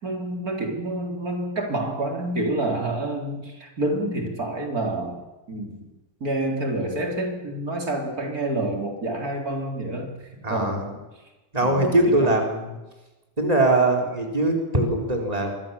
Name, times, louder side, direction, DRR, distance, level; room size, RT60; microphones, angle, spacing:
voice 1, 0.0-5.2 5.5-5.9 6.2-10.1 10.5-11.0 11.6-12.3, right 1 dB, 80° right, 1 dB, 4.5 m, -28 dB
voice 2, 10.4-10.8 11.5-12.8 13.4-15.5, right 1 dB, 25° right, 1 dB, 4.6 m, -21 dB
26.0 x 23.5 x 7.3 m, 1.1 s
omnidirectional pair, 1.6 m